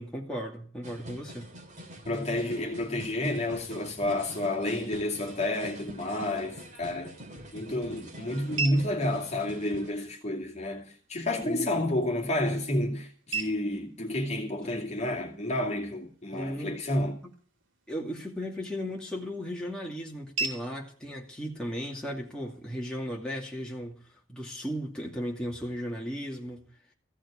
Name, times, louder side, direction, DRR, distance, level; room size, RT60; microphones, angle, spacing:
voice 1, 0.0-1.5 11.4-11.7 14.6-14.7 16.3-16.7 17.2-17.3 17.9-24.0 24.3-26.7, equal, 5° left, 2.4 m, -36 dB
sound 1, 0.8-9.9, equal, 40° right, 3.0 m, -46 dB
voice 2, 2.1-7.1 7.5-17.2, left 1 dB, 35° left, 2.4 m, -30 dB
sound 2, 6.8-22.8, right 5 dB, 80° right, 3.1 m, -43 dB
15.5 x 6.3 x 10.0 m
head